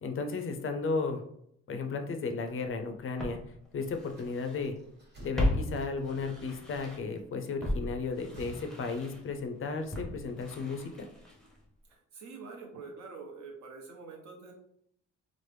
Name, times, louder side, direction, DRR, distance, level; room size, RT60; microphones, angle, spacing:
voice 1, 0.0-1.2 1.7-3.4 3.7-4.7 5.2-11.1, left 4 dB, 45° left, 6 dB, 0.5 m, -34 dB
Walk footsteps, 2.5-2.6 3.2-4.7 4.9-7.2 7.6-11.7 11.9-12.0, left 1 dB, ahead, 0.6 m, -36 dB
sound 1, 4.0-6.6 7.9-9.7, right 1 dB, 35° right, 1.2 m, -52 dB
voice 2, 11.9-14.5, right 4 dB, 65° right, 0 dB, 0.9 m, -46 dB
3.1 x 2.0 x 3.2 m, 0.71 s
cardioid pair, 90°, 30 cm